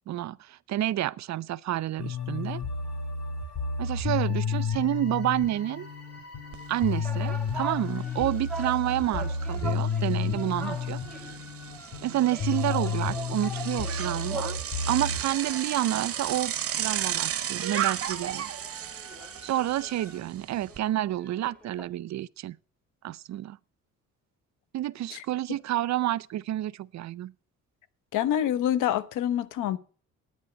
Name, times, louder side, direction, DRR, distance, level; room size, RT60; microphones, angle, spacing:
voice 1, 0.1-2.6 3.8-5.9 6.7-11.4 12.0-14.6 14.9-18.5 19.4-22.6 23.0-23.6 24.7-27.3, right 13 dB, 65° right, 0.6 m, -29 dB
sound 1, 2.0-20.2, left 5 dB, 55° left, 3.8 m, -33 dB
Bicycle, 6.5-6.6 7.0-20.8, right 10 dB, 50° right, 1.0 m, -35 dB
sound 2, 6.6-11.4 12.3-14.7 15.0-16.9 17.3-17.4 17.7-21.9, right 3 dB, 5° left, 2.0 m, -42 dB
voice 2, 28.1-29.8, left 11 dB, 90° left, 0.9 m, -26 dB
9.8 x 9.3 x 8.0 m
cardioid pair, 90°, 30 cm